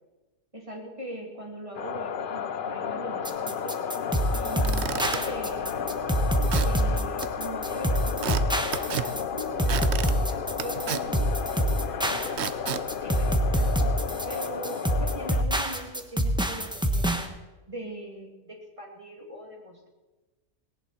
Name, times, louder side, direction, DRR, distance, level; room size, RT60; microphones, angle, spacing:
voice 1, 0.5-3.8 4.3-5.9 6.6-12.4 13.0-13.8 14.2-17.3 17.7-19.9, right 1 dB, 20° right, 0 dB, 2.9 m, -41 dB
sound 1, 1.7-15.4, left 7 dB, 55° left, 0.6 m, -33 dB
sound 2, 3.2-17.3, equal, 5° right, 0.9 m, -26 dB
Squeak / Wood, 4.4-14.0, right 8 dB, 55° right, 0.8 m, -36 dB
18.0 x 17.5 x 4.4 m, 1.1 s
omnidirectional pair, 1.6 m